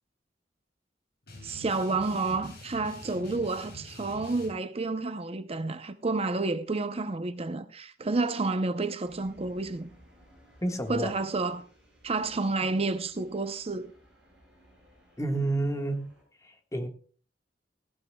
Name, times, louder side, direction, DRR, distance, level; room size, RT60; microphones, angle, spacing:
sound 1, 1.3-4.5, equal, 65° left, 6.4 m, -46 dB
voice 1, 1.4-9.9 10.9-11.6 12.0-13.9, right 3 dB, 35° right, 0.6 m, -30 dB
sound 2, 9.0-16.2, equal, 5° right, 6.9 m, -59 dB
voice 2, 10.6-11.1 15.2-16.1 16.4-16.9, right 2 dB, 20° left, 1.5 m, -30 dB
18.5 x 16.5 x 2.2 m
head